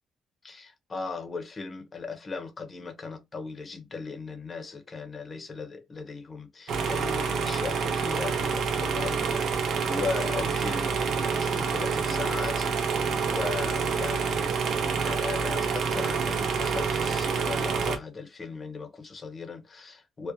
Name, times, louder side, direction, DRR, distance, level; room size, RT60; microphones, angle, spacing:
voice 1, 0.4-20.3, left 4 dB, 35° left, 0.7 m, -37 dB
sound 1, 6.7-18.0, right 5 dB, 70° right, 0.5 m, -27 dB
2.4 x 2.1 x 2.7 m
cardioid pair, 90°, 0 cm